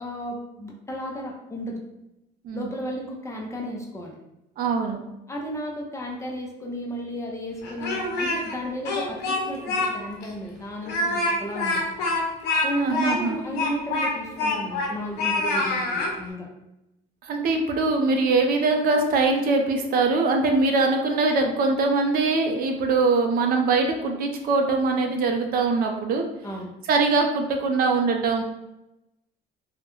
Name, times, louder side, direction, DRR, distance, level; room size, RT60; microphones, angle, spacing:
voice 1, 0.0-1.8 2.5-4.2 5.3-11.8 12.6-16.5 26.4-26.7, equal, 15° left, -1 dB, 0.5 m, -33 dB
voice 2, 4.6-5.0 12.8-13.4 17.2-26.2 26.9-28.4, right 3 dB, 60° right, 4 dB, 0.4 m, -22 dB
Speech, 7.6-8.6 8.9-9.9 10.2-10.3 10.8-14.9 15.2-16.1, left 2 dB, 80° left, 0.6 m, -26 dB
2.3 x 2.1 x 2.9 m, 0.91 s
cardioid pair, 110°, 17 cm